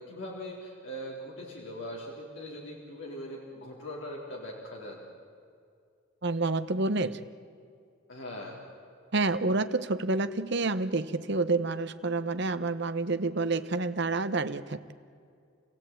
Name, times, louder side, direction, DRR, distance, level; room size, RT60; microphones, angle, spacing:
voice 1, 0.0-5.0 8.1-8.6, equal, 70° left, -3 dB, 3.8 m, -41 dB
voice 2, 6.2-7.2 9.1-14.9, right 3 dB, 60° right, 11 dB, 0.9 m, -28 dB
28.5 x 16.5 x 9.1 m, 2.3 s
head